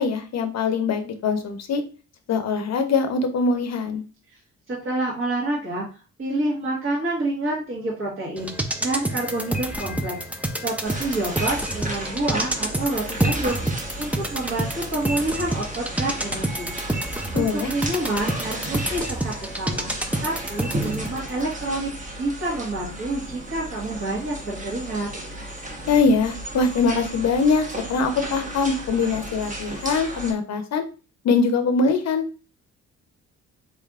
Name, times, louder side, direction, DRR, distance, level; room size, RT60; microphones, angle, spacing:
voice 1, 0.0-1.8 2.3-4.0 17.3-17.7 25.9-30.8 31.2-32.3, left 4 dB, 60° left, 7 dB, 0.7 m, -22 dB
voice 2, 4.7-5.9 6.2-13.6 14.0-16.7 17.3-19.9 20.2-21.9 22.2-25.1, right 2 dB, 45° right, -5 dB, 1.5 m, -28 dB
sound 1, 8.4-21.2 21.5-21.6, right 1 dB, 5° right, 0.5 m, -28 dB
sound 2, 10.8-30.3, right 1 dB, 25° right, 1.1 m, -34 dB
4.1 x 3.3 x 2.4 m, 0.34 s
cardioid pair, 90°, 30 cm